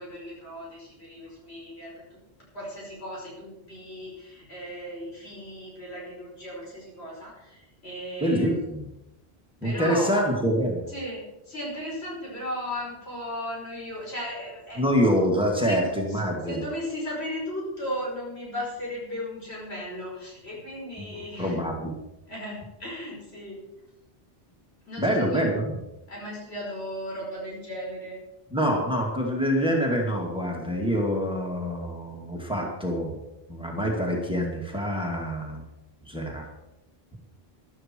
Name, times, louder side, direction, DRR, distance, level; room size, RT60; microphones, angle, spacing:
voice 1, 0.0-2.0 2.5-8.5 9.6-10.3 10.9-14.8 15.6-16.2 16.5-21.6 22.3-23.6 24.8-25.5 26.1-28.2, equal, 90° left, -4 dB, 5.8 m, -36 dB
voice 2, 8.2-8.9 9.6-10.8 14.8-16.6 21.0-22.0 25.0-25.7 28.5-33.2 33.5-35.6 36.0-36.5, equal, 5° right, -1 dB, 2.5 m, -26 dB
14.0 x 12.0 x 4.7 m, 0.94 s
omnidirectional pair, 1.0 m